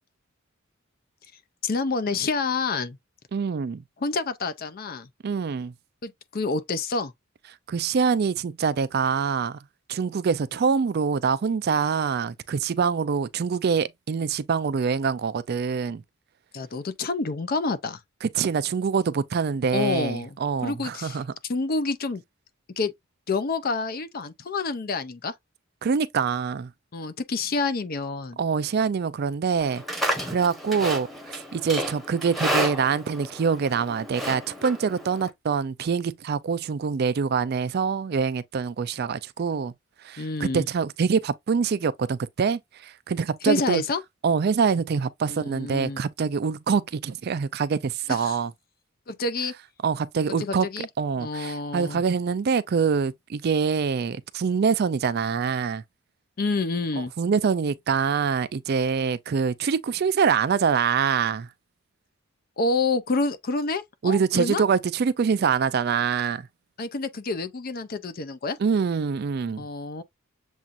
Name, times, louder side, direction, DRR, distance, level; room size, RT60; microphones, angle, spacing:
voice 1, 1.6-3.0 4.0-5.1 6.0-7.1 16.5-18.0 19.7-20.4 20.6-22.2 22.8-22.9 23.3-25.3 26.9-28.4 40.2-40.7 43.4-44.0 45.3-46.0 48.1-48.4 49.1-49.5 50.4-50.9 51.2-52.0 56.4-57.1 62.6-64.6 66.8-68.6 69.6-70.0, left 3 dB, 45° left, 0.5 m, -28 dB
voice 2, 3.3-3.8 5.2-5.7 7.7-9.6 9.9-16.0 18.2-21.3 25.8-26.7 28.4-39.7 40.0-43.8 44.2-48.5 49.8-50.7 51.0-55.8 57.0-61.5 64.0-66.5 68.6-69.6, right 6 dB, 50° right, 0.4 m, -25 dB
Livestock farm animals working animals, 29.6-35.3, equal, ahead, 0.9 m, -31 dB
7.2 x 2.5 x 2.5 m
head